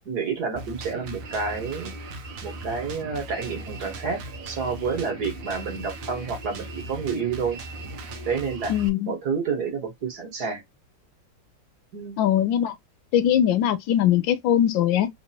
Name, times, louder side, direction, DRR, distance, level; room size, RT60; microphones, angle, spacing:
voice 1, 0.1-1.9 2.4-7.6 8.3-8.7 9.1-10.6 11.9-12.2, right 5 dB, 60° right, 1.9 m, -29 dB
Drum kit, 0.6-8.9, right 2 dB, 90° right, 1.5 m, -38 dB
voice 2, 8.7-9.1 12.2-12.7 13.1-15.1, left 10 dB, 85° left, 1.4 m, -21 dB
3.9 x 2.9 x 2.8 m
omnidirectional pair, 2.0 m